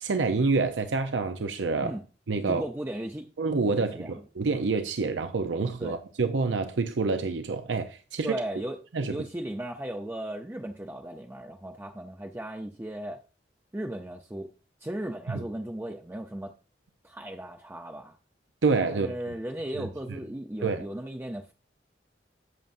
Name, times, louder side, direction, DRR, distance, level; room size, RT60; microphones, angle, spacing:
voice 1, 0.0-1.9 2.3-2.6 3.4-8.4 8.9-9.2 15.3-15.4 18.6-19.1 19.8-20.2 20.6-20.8, right 4 dB, 85° right, 0.6 m, -27 dB
voice 2, 2.5-3.3 3.8-4.2 5.8-6.0 8.2-8.8 9.1-13.2 13.7-14.5 14.8-16.5 17.0-18.2 18.9-21.5, right 1 dB, 10° right, 0.6 m, -36 dB
11.0 x 7.5 x 2.6 m
head